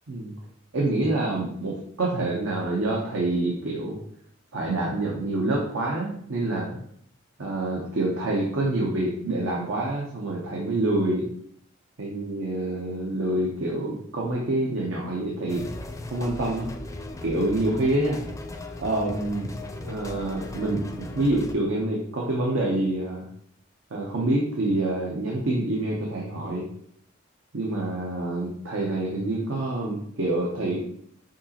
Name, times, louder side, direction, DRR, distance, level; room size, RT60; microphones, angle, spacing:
voice 1, 0.7-4.0 4.5-6.8 7.4-11.3 12.0-15.6 16.1-16.7 17.2-18.2 18.8-19.5 19.8-23.2 23.9-26.6 27.5-30.8, right 2 dB, 90° right, -3 dB, 0.9 m, -27 dB
sound 1, 15.5-21.5, left 2 dB, 15° left, 0.4 m, -37 dB
6.2 x 2.9 x 2.9 m, 0.67 s
head